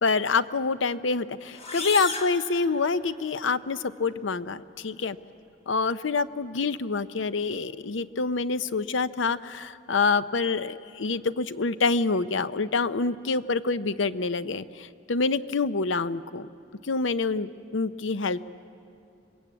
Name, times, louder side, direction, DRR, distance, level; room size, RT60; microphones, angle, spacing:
voice 1, 0.0-5.2 5.7-16.5 16.9-18.5, left 4 dB, 80° left, 14 dB, 0.7 m, -27 dB
sound 1, 1.5-3.4, left 4 dB, 35° left, 1.5 m, -35 dB
26.0 x 21.5 x 8.4 m, 2.6 s
head